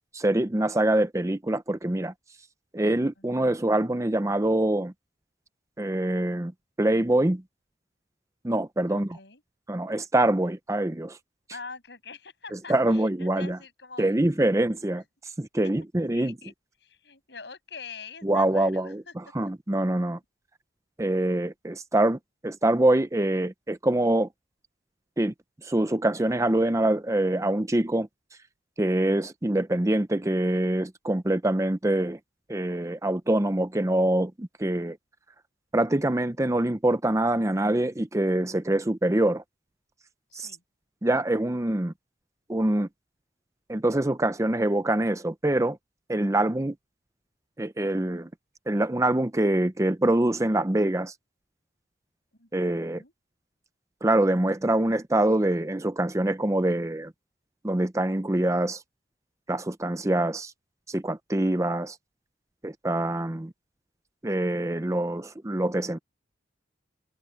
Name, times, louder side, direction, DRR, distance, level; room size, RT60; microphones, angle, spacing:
voice 1, 0.1-2.1 2.7-4.9 5.8-6.5 6.8-7.4 8.4-9.2 9.7-11.2 12.5-13.6 14.0-15.0 15.4-16.4 18.2-20.2 21.0-24.3 25.2-25.3 25.6-28.1 28.8-32.2 32.5-35.0 35.7-39.4 40.3-40.5 41.0-41.9 42.5-42.9 43.7-45.8 46.1-46.7 47.6-48.3 48.7-51.1 52.5-53.0 54.0-57.1 57.6-58.8 59.5-60.5 60.9-62.0 62.6-63.5 64.2-66.0, right 1 dB, 15° right, 0.6 m, -25 dB
voice 2, 8.9-9.4 11.5-14.5 14.9-15.0 16.1-16.5 16.8-19.1 19.4-19.5 40.3-40.6 52.4-53.1, left 5 dB, 70° left, 6.8 m, -44 dB
head